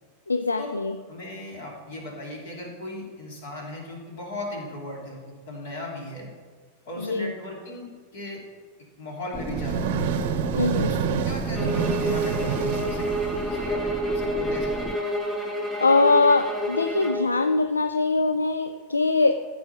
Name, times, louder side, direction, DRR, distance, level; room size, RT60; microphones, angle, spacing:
voice 1, 0.3-1.0 7.0-7.3 10.5-10.9 15.8-19.5, left 3 dB, 80° left, 9 dB, 0.4 m, -22 dB
voice 2, 1.1-6.3 6.8-8.4 9.0-10.0 10.5-11.0 11.2-13.1 13.3-14.9, left 1 dB, 55° left, -1 dB, 3.1 m, -37 dB
sound 1, 9.3-15.0, right 3 dB, 5° right, 0.4 m, -35 dB
sound 2, 9.3-13.9, right 6 dB, 50° right, 0.8 m, -28 dB
sound 3, 11.5-17.3, equal, 10° left, 3.4 m, -29 dB
14.0 x 5.5 x 5.8 m, 1.5 s
figure-of-eight pair, 90°, 0 cm